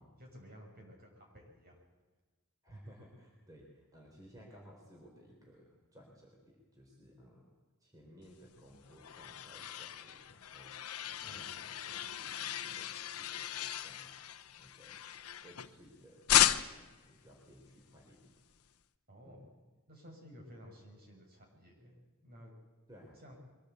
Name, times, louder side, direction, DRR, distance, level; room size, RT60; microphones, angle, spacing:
voice 1, 0.2-1.8 11.2-11.5 19.1-19.6 19.9-21.9 22.2-22.5 23.2-23.4, equal, 45° right, 1 dB, 6.2 m, -54 dB
voice 2, 2.6-7.5 7.8-10.7 11.0-14.1 14.6-15.0 15.4-18.3 19.2-19.4 22.9-23.2, equal, 15° right, -1 dB, 3.9 m, -58 dB
sound 1, 8.6-15.9 16.3-16.9, left 11 dB, 80° left, 0.9 m, -35 dB
23.0 x 17.0 x 8.3 m, 1.3 s
head